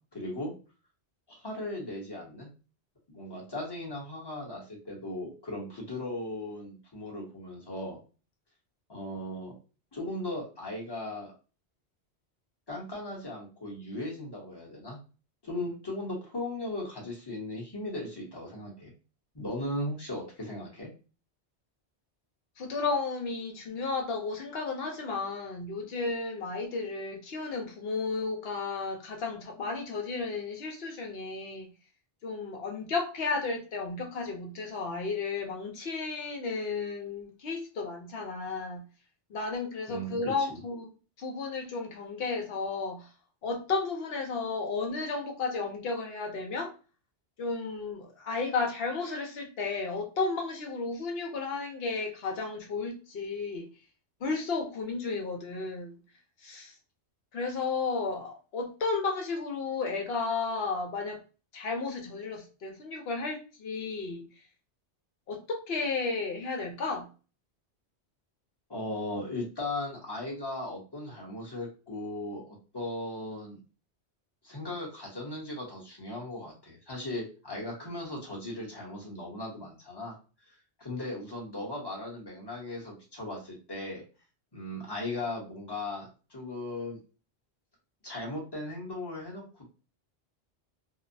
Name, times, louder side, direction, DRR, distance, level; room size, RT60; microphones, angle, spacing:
voice 1, 0.1-0.5 1.3-2.5 3.1-8.0 8.9-9.6 9.9-11.3 12.7-15.0 15.4-18.9 19.3-20.9 39.9-40.6 68.7-73.6 74.4-80.1 80.8-84.0 84.5-87.0 88.0-89.7, left 1 dB, 25° left, 0.8 m, -37 dB
voice 2, 22.6-31.7 32.2-38.8 39.3-40.9 41.2-43.1 43.4-46.7 47.4-53.7 54.2-56.0 56.4-56.7 57.3-61.2 61.5-64.3 65.3-67.1, left 4 dB, 65° left, 0.9 m, -33 dB
2.8 x 2.0 x 2.6 m
omnidirectional pair, 1.1 m